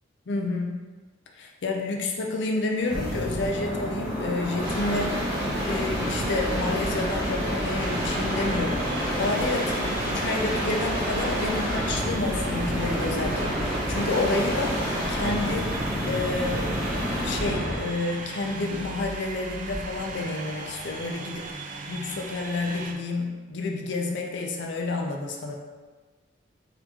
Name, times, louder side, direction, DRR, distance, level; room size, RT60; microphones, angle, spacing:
voice 1, 0.3-0.8 1.4-5.1 5.7-8.8 9.1-15.7 16.1-21.5 21.9-25.5, left 2 dB, 60° left, 1 dB, 0.5 m, -29 dB
sound 1, 2.8-17.9 19.6-20.1, equal, 10° right, 1.2 m, -28 dB
sound 2, 7.8-22.9, right 3 dB, 40° right, 0.3 m, -38 dB
4.2 x 2.6 x 2.9 m, 1.3 s
head